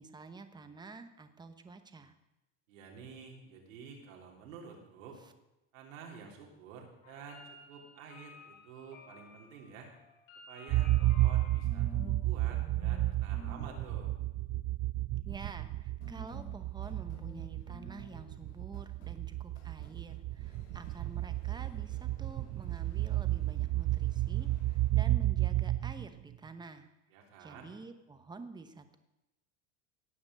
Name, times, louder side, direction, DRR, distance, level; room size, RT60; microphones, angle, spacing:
voice 1, 0.0-2.1 5.2-5.3 15.2-26.9 27.4-29.0, right 4 dB, 10° right, 9 dB, 1.0 m, -49 dB
voice 2, 2.7-5.2 5.7-9.9 10.5-14.1 27.1-27.7, right 6 dB, 90° right, 0 dB, 3.6 m, -50 dB
sound 1, 7.0-12.2 12.5-13.1 13.3-14.0 16.0-24.9, left 4 dB, 80° left, 6.1 m, -53 dB
sound 2, 10.7-26.4, right 16 dB, 35° right, 0.4 m, -32 dB
18.0 x 6.0 x 7.5 m, 0.96 s
supercardioid pair, 135°, 39 cm